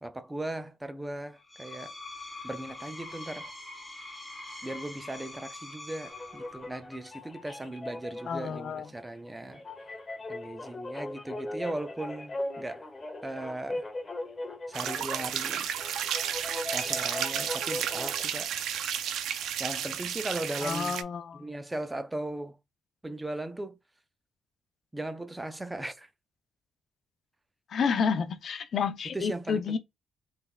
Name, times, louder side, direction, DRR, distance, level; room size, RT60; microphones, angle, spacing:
voice 1, 0.0-1.9 2.4-3.5 4.6-9.6 10.3-12.9 13.2-13.9 14.7-15.7 16.7-18.6 19.6-21.0 21.3-22.6 23.0-23.8 24.9-26.1 29.0-29.8, right 1 dB, 15° right, 0.4 m, -38 dB
Screech, 1.4-6.8, left 2 dB, 5° left, 0.9 m, -44 dB
sound 1, 6.1-18.2, left 2 dB, 25° left, 1.2 m, -39 dB
voice 2, 8.3-8.9 20.6-21.5 27.7-29.8, left 6 dB, 55° left, 0.5 m, -30 dB
sound 2, 14.7-21.0, right 9 dB, 80° right, 0.4 m, -32 dB
3.4 x 3.2 x 2.2 m
cardioid pair, 90°, 0 cm